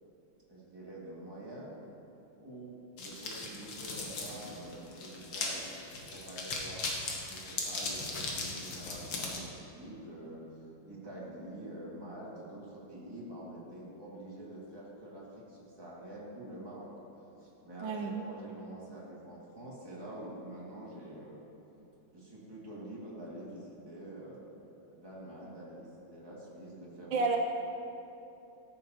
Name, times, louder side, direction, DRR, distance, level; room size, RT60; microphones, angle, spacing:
voice 1, 0.5-1.8 2.4-5.8 6.1-6.9 7.3-16.9 17.4-21.4 22.1-27.2, right 1 dB, 15° right, -7 dB, 1.7 m, -46 dB
sound 1, 3.0-9.4, left 3 dB, 70° left, 1.8 m, -38 dB
voice 2, 17.8-18.1 27.1-27.4, right 4 dB, 75° right, 2 dB, 1.3 m, -30 dB
14.0 x 7.3 x 2.8 m, 2.9 s
omnidirectional pair, 2.2 m